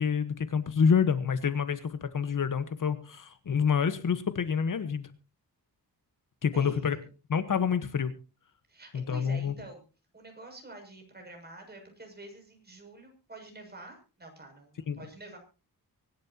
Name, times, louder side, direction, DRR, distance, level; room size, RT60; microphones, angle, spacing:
voice 1, 0.0-5.1 6.4-7.0 7.3-8.1 8.9-9.5 14.9-15.0, left 6 dB, 55° left, 12 dB, 1.3 m, -27 dB
voice 2, 6.5-6.9 8.7-9.8 10.1-15.4, right 2 dB, 25° right, 3 dB, 6.8 m, -47 dB
24.5 x 12.0 x 2.9 m, 0.33 s
wide cardioid pair, 125°, 37 cm